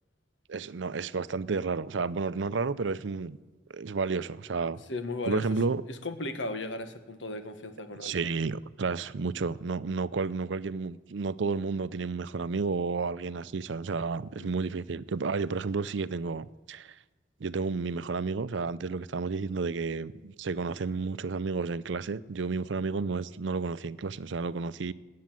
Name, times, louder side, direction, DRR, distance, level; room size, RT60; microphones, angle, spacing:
voice 1, 0.5-3.4 3.7-4.8 5.3-5.8 8.0-17.0 17.4-24.9, right 4 dB, 80° right, 0.5 m, -31 dB
voice 2, 4.9-5.5 5.9-8.2 14.4-14.5, left 2 dB, 90° left, 1.4 m, -36 dB
19.5 x 8.6 x 7.6 m
head